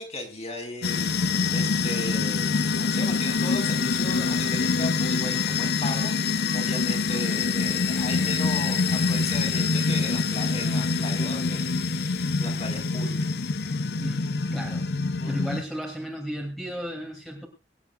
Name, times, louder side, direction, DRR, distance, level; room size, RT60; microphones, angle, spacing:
voice 1, 0.0-2.5 2.8-11.7 12.0-13.3 15.2-15.4, left 2 dB, 35° left, 3 dB, 4.7 m, -36 dB
sound 1, 0.8-15.6, left 4 dB, 65° left, 0.8 m, -25 dB
voice 2, 14.0-14.8 15.3-17.5, equal, ahead, 0 dB, 2.7 m, -34 dB
24.0 x 10.5 x 2.4 m, 0.27 s
head